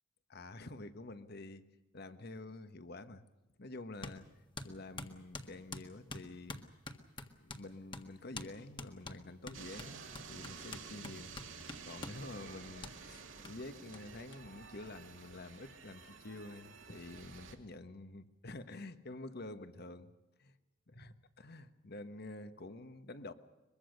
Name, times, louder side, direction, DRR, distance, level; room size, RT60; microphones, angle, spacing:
voice 1, 0.3-1.6 1.9-3.2 3.6-4.3 4.6-6.6 7.3-11.3 11.8-20.1 20.4-20.5 20.9-23.3, left 2 dB, 55° left, 11 dB, 1.4 m, -48 dB
sound 1, 4.0-4.2 4.6-7.7 7.9-8.1 8.3-8.5 8.8-12.2 12.8-13.0 13.4-13.5 13.9-14.0 14.3-14.4 14.6-15.4, left 2 dB, 25° left, 1.6 m, -46 dB
sound 2, 9.5-17.6, right 5 dB, 80° right, 2.9 m, -51 dB
23.0 x 22.5 x 6.6 m, 1.1 s
head